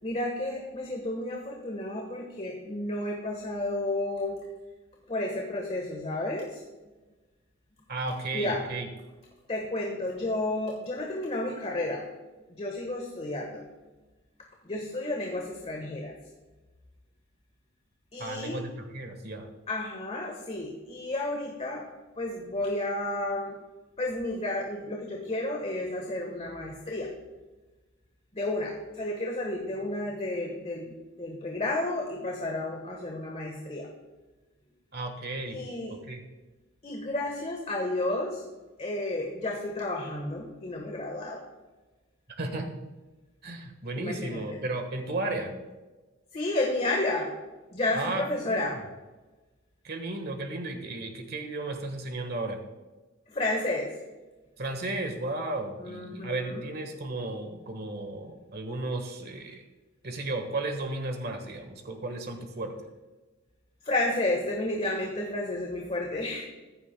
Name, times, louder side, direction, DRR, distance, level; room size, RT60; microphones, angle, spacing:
voice 1, 0.0-4.4 5.1-6.6 8.3-8.6 9.5-12.0 12.5-13.7 14.6-16.1 18.1-18.6 19.7-21.9 22.2-23.6 24.0-27.1 28.3-33.9 35.5-36.0 36.8-38.4 38.8-41.4 43.9-44.6 46.3-47.3 47.7-48.8 53.3-53.9 55.8-56.7 63.8-66.4, left 2 dB, 30° left, 0 dB, 1.4 m, -31 dB
voice 2, 7.9-8.9 18.2-19.5 34.9-35.6 35.9-36.2 42.4-42.7 43.4-45.5 47.9-48.7 49.8-52.6 54.6-59.6 60.0-62.7, right 2 dB, 50° right, 5 dB, 1.5 m, -34 dB
15.5 x 11.0 x 2.3 m, 1.2 s
head